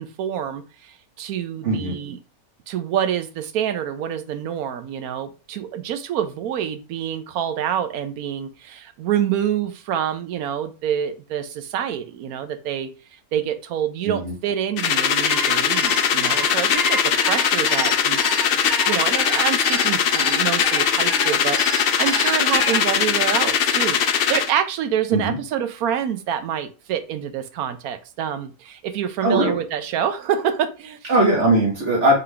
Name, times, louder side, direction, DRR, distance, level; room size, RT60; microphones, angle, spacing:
voice 1, 0.0-2.2 2.7-12.9 13.3-18.2 18.9-31.1, right 9 dB, 80° right, 9 dB, 1.1 m, -27 dB
voice 2, 1.6-2.0 14.0-14.3 25.1-25.4 29.2-29.5 31.1-32.1, right 1 dB, 55° right, -1 dB, 1.6 m, -19 dB
sound 1, 14.8-24.5, left 8 dB, 80° left, 0.5 m, -20 dB
sound 2, 15.0-22.8, right 1 dB, 20° right, 0.6 m, -30 dB
3.9 x 3.3 x 3.3 m, 0.33 s
omnidirectional pair, 1.5 m